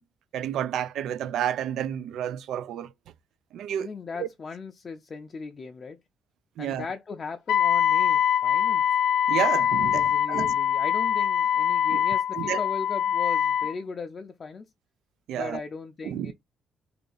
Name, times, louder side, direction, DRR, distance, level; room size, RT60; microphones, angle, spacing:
voice 1, 0.3-2.9 3.5-3.9 4.2-4.3 6.6-6.8 9.3-10.5 11.9-12.0 12.3-12.6 15.3-15.6 16.0-16.3, right 10 dB, 80° right, 0.3 m, -30 dB
voice 2, 3.8-6.0 6.6-8.9 9.9-14.6 15.3-16.3, left 4 dB, 40° left, 0.4 m, -38 dB
Wind instrument woodwind instrument, 7.5-13.7, left 9 dB, 85° left, 0.7 m, -23 dB
2.7 x 2.6 x 3.8 m
cardioid pair, 90°, 0 cm